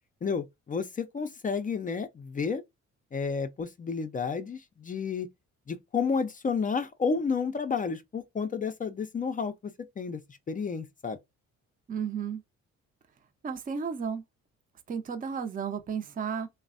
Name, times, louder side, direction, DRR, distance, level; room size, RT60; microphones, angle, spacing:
voice 1, 0.2-2.6 3.1-5.3 5.7-10.2 10.5-11.2, left 5 dB, 30° left, 0.4 m, -31 dB
voice 2, 11.9-12.4 13.4-14.2 14.9-16.5, right 6 dB, 30° right, 0.5 m, -33 dB
3.1 x 2.0 x 2.4 m
cardioid pair, 90°, 30 cm